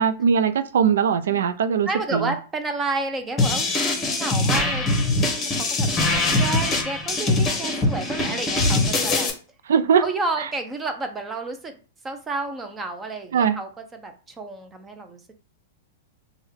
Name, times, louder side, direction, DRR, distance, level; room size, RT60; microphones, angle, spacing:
voice 1, 0.0-2.3 9.7-10.0 10.4-10.5 13.3-13.6, right 7 dB, 80° right, 12 dB, 0.4 m, -20 dB
voice 2, 1.9-9.3 10.0-11.8 12.0-13.7 14.0-15.2, right 3 dB, 15° right, 7 dB, 0.5 m, -31 dB
sound 1, 3.4-9.3, left 2 dB, 15° left, 0.8 m, -22 dB
3.5 x 2.1 x 3.5 m, 0.37 s
hypercardioid pair, 150°, 0 cm